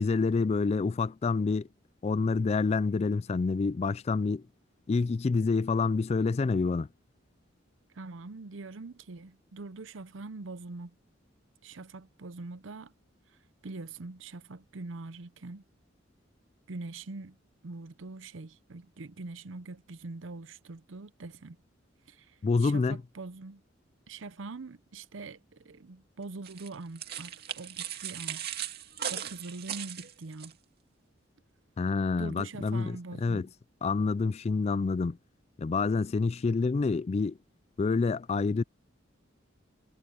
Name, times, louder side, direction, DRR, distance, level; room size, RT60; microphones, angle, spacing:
voice 1, 0.0-1.7 2.0-4.4 4.9-6.9 22.4-23.0 31.8-33.5 33.8-35.2 35.6-37.4 37.8-38.6, left 4 dB, 35° left, 0.3 m, -27 dB
voice 2, 7.9-11.0 11.6-12.9 13.6-15.6 16.7-17.4 17.6-21.6 22.1-23.6 24.1-28.5 29.1-30.6 32.2-33.5, right 3 dB, 75° right, 0.7 m, -43 dB
sound 1, 26.4-30.5, right 9 dB, 55° right, 2.3 m, -38 dB
head